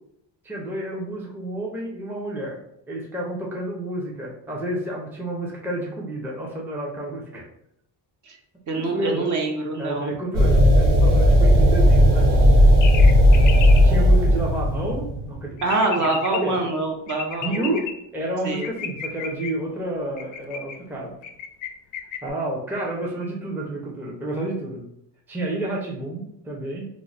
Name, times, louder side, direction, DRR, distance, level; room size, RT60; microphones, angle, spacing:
voice 1, 0.4-2.6 2.9-7.5 8.8-9.3 9.8-12.5 13.8-15.6 16.3-16.5 17.4-17.8 18.1-21.1 22.2-24.8 25.3-26.9, right 1 dB, 5° right, -3 dB, 0.5 m, -30 dB
voice 2, 8.7-10.1 15.6-17.8 18.4-18.6, right 2 dB, 40° right, 2 dB, 0.7 m, -25 dB
sound 1, 10.3-15.4, equal, 65° right, 1.0 m, -15 dB
northern mockingbird, 12.8-13.8 15.6-16.4 17.1-17.9 18.6-19.5 20.2-20.8 21.2-21.7 21.9-22.3, left 7 dB, 45° left, 0.4 m, -33 dB
3.0 x 2.1 x 3.9 m, 0.77 s
cardioid pair, 125°, 44 cm